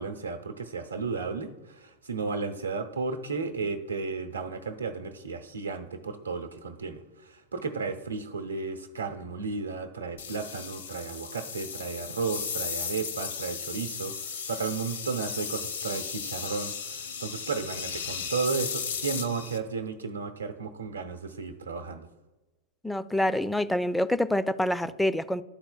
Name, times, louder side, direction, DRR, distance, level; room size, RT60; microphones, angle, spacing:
voice 1, 0.0-22.1, right 4 dB, 75° right, 5 dB, 0.7 m, -34 dB
sound 1, 10.2-19.6, left 6 dB, 65° left, 0.7 m, -35 dB
voice 2, 22.8-25.4, left 1 dB, 5° left, 13 dB, 0.3 m, -26 dB
12.0 x 4.3 x 2.3 m, 1.2 s
figure-of-eight pair, 90°, 0 cm